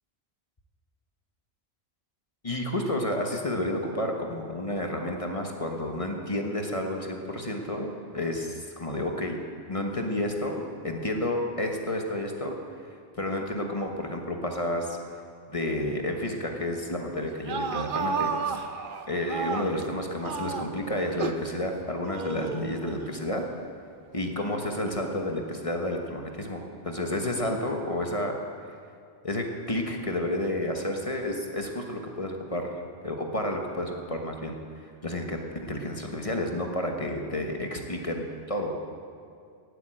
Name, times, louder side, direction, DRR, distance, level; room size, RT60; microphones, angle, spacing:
voice 1, 2.4-9.4 9.7-12.5 13.2-15.0 15.5-18.6 19.1-23.4 24.1-28.3 29.2-34.6 35.0-38.7, left 1 dB, 30° left, 2 dB, 1.4 m, -31 dB
sound 1, 17.3-19.9 20.2-21.5 22.1-23.1, right 5 dB, 55° right, 0.9 m, -32 dB
18.5 x 8.1 x 7.8 m, 2.3 s
omnidirectional pair, 1.1 m